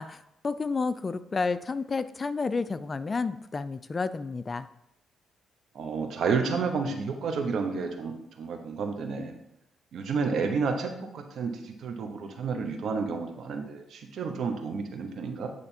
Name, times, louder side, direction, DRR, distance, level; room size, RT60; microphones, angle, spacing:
voice 1, 0.0-4.7, left 4 dB, 30° left, 14 dB, 0.3 m, -31 dB
voice 2, 5.7-9.3 9.9-15.5, right 5 dB, 65° right, 5 dB, 0.9 m, -31 dB
8.7 x 3.3 x 4.4 m, 0.79 s
cardioid pair, 90°, 0 cm